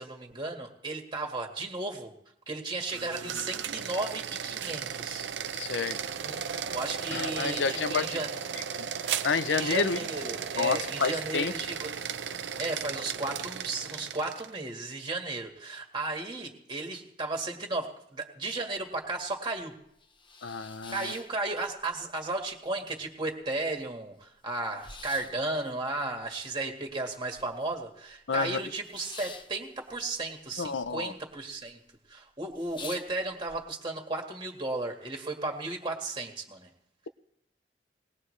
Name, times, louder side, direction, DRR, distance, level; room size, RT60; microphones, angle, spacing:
voice 1, 0.0-2.1 2.5-5.3 6.2-8.4 9.5-11.9 12.6-19.8 20.9-31.8 32.1-36.7, right 2 dB, 25° right, 2 dB, 1.8 m, -34 dB
sound 1, 2.8-14.6, right 7 dB, 80° right, 0.6 m, -36 dB
voice 2, 5.5-6.0 7.1-8.2 8.8-8.9 9.2-10.0 10.6-11.5 20.4-21.1 28.3-28.6 30.6-31.1, left 5 dB, 85° left, 13 dB, 0.7 m, -29 dB
sound 2, 18.8-18.9 19.3-19.4 19.8-22.0 22.3-23.1 23.4-23.5 23.7-27.8 28.1-30.9 31.2-31.7 32.1-32.2 32.5-33.6, left 4 dB, 30° left, 1.0 m, -48 dB
20.5 x 19.5 x 3.3 m, 0.76 s
head